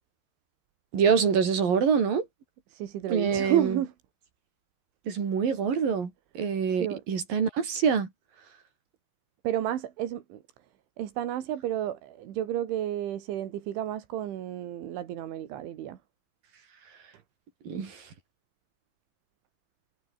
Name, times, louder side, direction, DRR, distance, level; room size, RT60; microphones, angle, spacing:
voice 1, 0.9-2.3 3.1-3.8 5.1-8.1 17.7-18.1, right 6 dB, 50° right, 5.6 m, -25 dB
voice 2, 2.7-3.9 6.8-7.0 9.4-10.4 11.0-16.0, right 11 dB, 80° right, 4.6 m, -31 dB
omnidirectional pair, 5.4 m